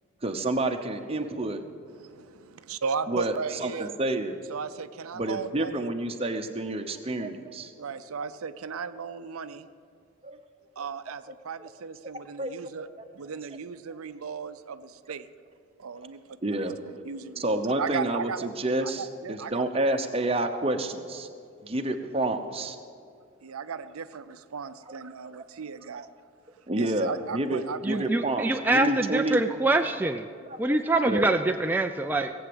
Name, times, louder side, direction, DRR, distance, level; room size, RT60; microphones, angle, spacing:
voice 1, 0.2-1.6 3.1-4.4 5.1-7.7 10.2-10.4 12.1-12.5 16.4-16.8 17.4-21.3 21.6-22.8 25.2-25.3 25.9-26.1 26.7-29.4 30.7-31.4, right 1 dB, 25° right, 5 dB, 0.9 m, -29 dB
voice 2, 2.0-3.9 4.5-5.7 7.8-9.7 10.8-12.9 13.1-15.3 15.8-16.2 16.5-18.5 18.8-19.6 23.4-26.1 26.8-28.0, right 5 dB, 85° right, 12 dB, 0.6 m, -36 dB
voice 3, 27.8-30.3 30.6-32.3, right 2 dB, 10° right, 4 dB, 0.3 m, -25 dB
18.0 x 8.0 x 7.9 m, 2.4 s
head